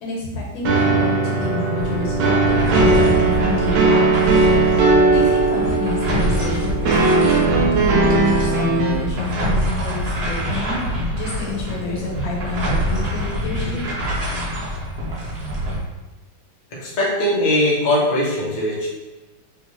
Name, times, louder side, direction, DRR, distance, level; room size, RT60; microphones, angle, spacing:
voice 1, 0.0-2.4 2.7-4.2 5.1-10.8 11.1-13.8, left 3 dB, 80° left, -3 dB, 1.7 m, -28 dB
sound 1, 0.6-8.9, right 3 dB, 85° right, 1.4 m, -18 dB
sound 2, 1.8-15.8, right 1 dB, 60° right, 1.3 m, -25 dB
voice 2, 16.8-18.9, left 1 dB, 50° left, -5 dB, 0.5 m, -20 dB
3.4 x 2.8 x 3.0 m, 1.2 s
omnidirectional pair, 2.1 m